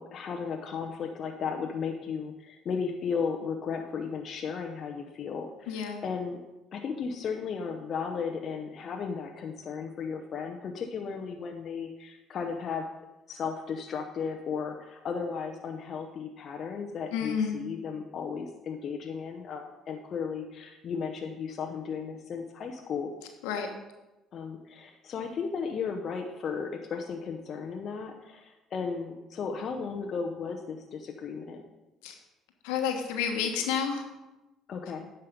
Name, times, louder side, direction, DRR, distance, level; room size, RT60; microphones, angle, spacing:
voice 1, 0.0-6.4 6.7-12.9 13.3-23.1 24.3-31.6 34.7-35.1, left 6 dB, 50° left, 3 dB, 0.8 m, -35 dB
voice 2, 5.7-6.0 17.1-17.6 23.4-23.7 32.0-32.1 32.6-34.1, left 7 dB, 80° left, 4 dB, 1.2 m, -30 dB
9.7 x 5.6 x 5.1 m, 1.0 s
hypercardioid pair, 65°, 0 cm